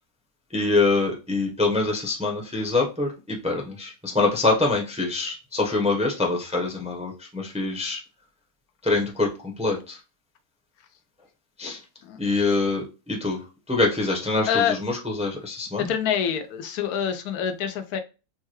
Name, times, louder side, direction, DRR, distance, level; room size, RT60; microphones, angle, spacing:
voice 1, 0.5-8.0 8.8-10.0 11.6-11.8 12.2-13.4 13.7-15.9, left 3 dB, 5° right, -1 dB, 0.5 m, -25 dB
voice 2, 14.5-14.8 15.8-18.0, left 8 dB, 85° left, 8 dB, 1.1 m, -26 dB
4.5 x 2.2 x 3.0 m, 0.30 s
omnidirectional pair, 1.5 m